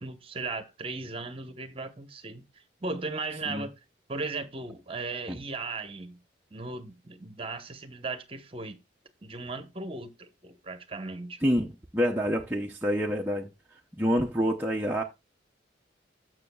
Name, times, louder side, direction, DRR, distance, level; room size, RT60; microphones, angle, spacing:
voice 1, 0.0-3.7 4.1-6.2 6.5-8.8 9.2-11.4, right 3 dB, 30° right, 0.9 m, -37 dB
voice 2, 11.4-13.5 13.9-15.0, equal, 10° right, 0.6 m, -27 dB
13.5 x 6.2 x 2.3 m
head